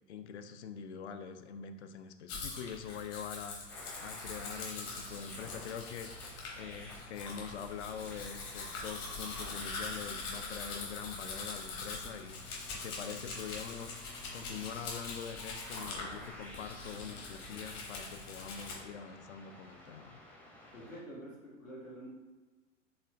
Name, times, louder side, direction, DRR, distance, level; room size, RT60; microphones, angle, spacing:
voice 1, 0.1-20.2, left 7 dB, 60° left, 8 dB, 0.5 m, -44 dB
Domestic sounds home sounds, 2.3-18.8, left 3 dB, 40° left, 1.1 m, -43 dB
sound 1, 3.7-21.0, left 1 dB, 5° left, 0.5 m, -52 dB
voice 2, 20.7-22.1, equal, 85° left, -5 dB, 1.4 m, -47 dB
4.2 x 3.3 x 2.4 m, 1.3 s
figure-of-eight pair, 90°, 38 cm